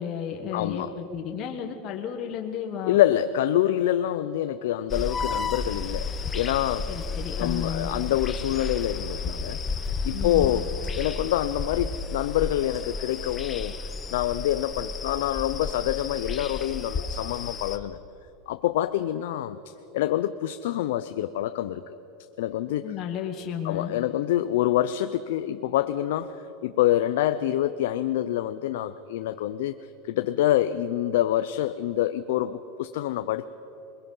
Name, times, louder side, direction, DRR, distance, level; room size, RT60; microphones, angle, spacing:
voice 1, 0.0-3.0 6.9-7.9 10.1-10.5 22.8-23.9, left 8 dB, 35° left, 2 dB, 1.3 m, -33 dB
voice 2, 0.5-0.9 2.8-6.9 7.3-9.6 10.0-10.7 11.0-13.8 14.1-18.0 18.5-21.8 22.4-22.8 23.6-29.8 30.1-33.5, left 12 dB, 75° left, 10 dB, 0.6 m, -26 dB
sound 1, 4.9-17.8, left 4 dB, 20° left, 0.9 m, -32 dB
22.0 x 22.0 x 5.6 m, 3.0 s
supercardioid pair, 155°, 0 cm